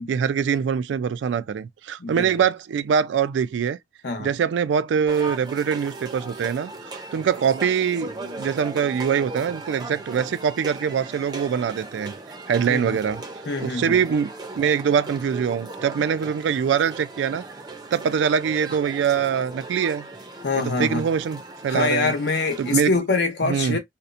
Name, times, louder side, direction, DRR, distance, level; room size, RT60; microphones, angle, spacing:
voice 1, 0.0-3.8 4.2-12.1 12.5-13.2 13.6-17.4 17.9-20.1 20.6-22.1 22.6-22.9 23.4-23.8, right 7 dB, 85° right, 0.3 m, -23 dB
voice 2, 2.0-2.5 4.0-4.3 12.7-13.0 13.5-14.0 20.4-21.1 21.7-23.8, left 3 dB, 70° left, 0.7 m, -25 dB
sound 1, 5.1-22.8, right 2 dB, 25° right, 0.5 m, -38 dB
2.8 x 2.1 x 2.4 m
head